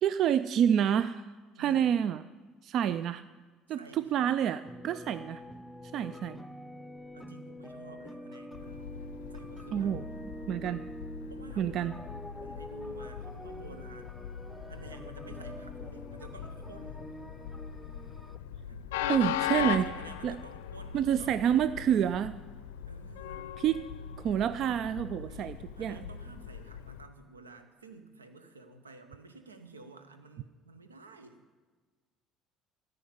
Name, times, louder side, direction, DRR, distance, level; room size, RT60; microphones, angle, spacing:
voice 1, 0.0-1.2 1.6-2.2 2.6-3.2 3.7-5.4 5.9-6.3 9.7-10.0 10.5-10.8 11.6-11.9 19.1-19.9 20.2-20.3 20.9-22.4 23.6-23.9 24.2-26.0, right 9 dB, 55° right, 14 dB, 0.3 m, -28 dB
voice 2, 1.5-1.9 3.7-4.4 6.0-6.4 7.1-8.9 9.3-10.0 11.3-12.0 12.4-14.2 14.7-17.1 18.6-19.0 19.7-21.5 22.9-23.5 25.3-31.4, right 3 dB, 85° right, 9 dB, 0.8 m, -51 dB
sound 1, 4.6-18.4, equal, 5° left, 0.8 m, -46 dB
Train, 8.5-27.1, left 10 dB, 75° left, 0.5 m, -40 dB
13.5 x 5.4 x 9.3 m, 1.4 s
figure-of-eight pair, 60°, 0 cm